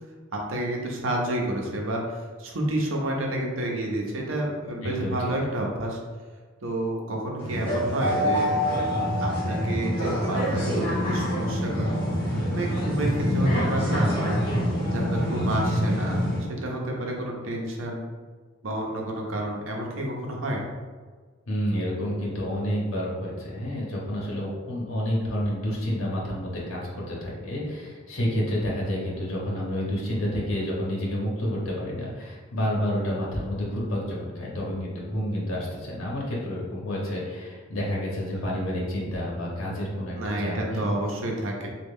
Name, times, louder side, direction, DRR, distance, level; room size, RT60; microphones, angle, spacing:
voice 1, 0.3-6.0 6.6-8.5 9.2-12.0 12.5-14.3 14.9-18.0 18.6-20.6 40.2-41.7, right 1 dB, 80° right, 0 dB, 0.7 m, -30 dB
voice 2, 4.8-5.2 21.5-40.9, equal, 85° left, -4 dB, 0.9 m, -29 dB
sound 1, 7.4-16.4, equal, 25° left, 1.1 m, -25 dB
3.2 x 2.3 x 3.6 m, 1.4 s
head